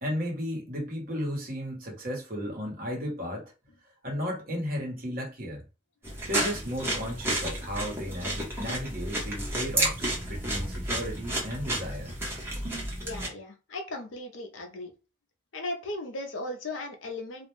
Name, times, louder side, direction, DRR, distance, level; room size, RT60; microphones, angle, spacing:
voice 1, 0.0-3.5 4.0-5.6 6.3-12.1 12.6-12.9, equal, 45° right, 1.0 m, -34 dB
sound 1, 6.0-13.3, right 1 dB, 10° right, 0.8 m, -31 dB
voice 2, 13.0-14.9 15.5-17.5, left 2 dB, 75° left, 0.6 m, -37 dB
2.4 x 2.1 x 3.1 m
head